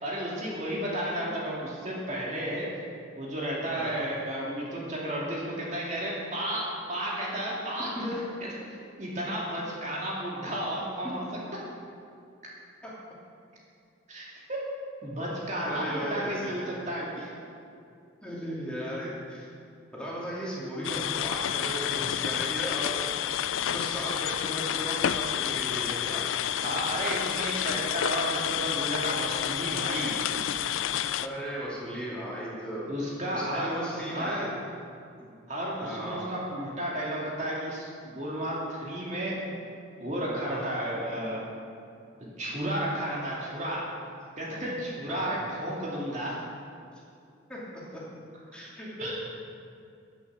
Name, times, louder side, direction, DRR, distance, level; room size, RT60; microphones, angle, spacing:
voice 1, 0.0-2.7 3.2-8.5 9.0-11.4 14.1-14.6 15.0-17.3 26.6-30.2 32.9-33.8 34.1-34.5 35.5-39.4 40.0-41.4 42.2-43.8 44.4-46.3 49.0-49.2, right 1 dB, 35° right, -5 dB, 2.4 m, -32 dB
voice 2, 15.7-16.7 18.2-19.5 19.9-23.0 23.6-26.3 31.2-32.9 33.3-34.5 35.2-35.3 35.8-36.3 40.5-40.6 45.1-45.4 47.5-47.6 47.9-48.0 48.5-49.2, equal, 5° left, -7 dB, 2.7 m, -36 dB
sound 1, 20.8-31.3, left 10 dB, 80° left, 0.4 m, -30 dB
10.5 x 9.8 x 7.3 m, 2.5 s
head